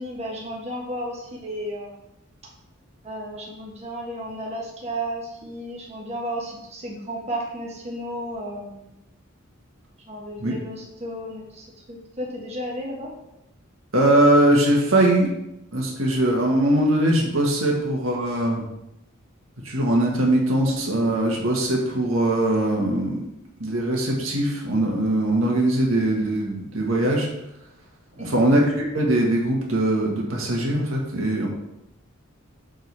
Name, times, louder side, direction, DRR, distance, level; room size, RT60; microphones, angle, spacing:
voice 1, 0.0-2.0 3.0-8.9 10.1-13.1 28.2-28.5, equal, 30° right, -2 dB, 1.3 m, -33 dB
voice 2, 13.9-15.3 15.7-18.6 19.6-23.2 23.6-27.3 28.2-31.5, right 1 dB, 85° right, -1 dB, 1.7 m, -21 dB
7.9 x 3.8 x 4.7 m, 0.86 s
head